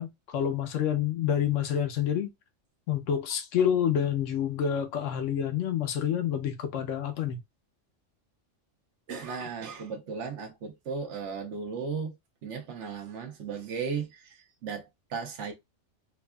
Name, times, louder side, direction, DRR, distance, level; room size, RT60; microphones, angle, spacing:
voice 1, 0.0-2.3 2.9-7.4, left 9 dB, 80° left, 1.1 m, -28 dB
voice 2, 9.1-12.2 12.4-15.5, right 5 dB, 65° right, 1.2 m, -36 dB
4.6 x 2.4 x 2.3 m
omnidirectional pair, 1.3 m